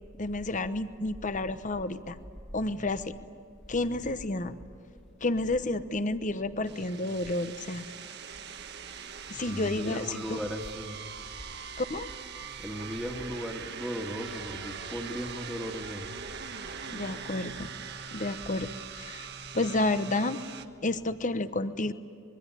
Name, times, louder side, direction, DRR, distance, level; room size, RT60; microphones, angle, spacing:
voice 1, 0.2-2.2 2.5-3.2 3.7-4.5 5.2-7.8 9.3-10.4 11.8-12.1 16.9-17.7 18.1-19.3 19.5-20.4 20.8-21.9, left 2 dB, 40° left, 12 dB, 1.0 m, -30 dB
sound 1, 6.6-20.6, right 7 dB, 55° right, 1.3 m, -42 dB
voice 2, 9.5-11.0 12.6-16.1 17.6-17.7, equal, ahead, 1 dB, 1.9 m, -37 dB
25.5 x 22.0 x 9.7 m, 2.5 s
head